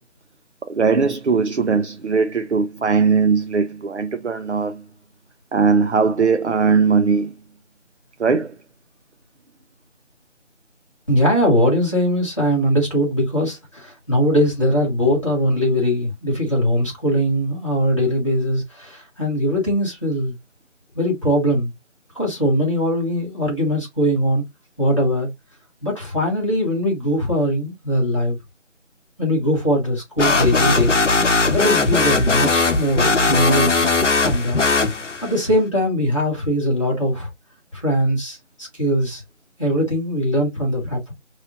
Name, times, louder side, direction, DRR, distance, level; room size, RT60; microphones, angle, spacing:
voice 1, 0.6-4.8 5.5-7.3 8.2-8.6, right 5 dB, 65° right, 0.5 m, -19 dB
voice 2, 11.1-20.4 20.9-21.7 22.1-24.4 24.8-25.3 25.8-28.4 29.2-30.9 31.2-33.9 34.2-34.6 35.2-37.3 37.7-39.2 39.6-41.1, equal, 25° left, 1.7 m, -21 dB
sound 1, 30.2-35.4, left 3 dB, 75° left, 0.9 m, -18 dB
4.7 x 3.0 x 2.5 m
figure-of-eight pair, 180°, 36 cm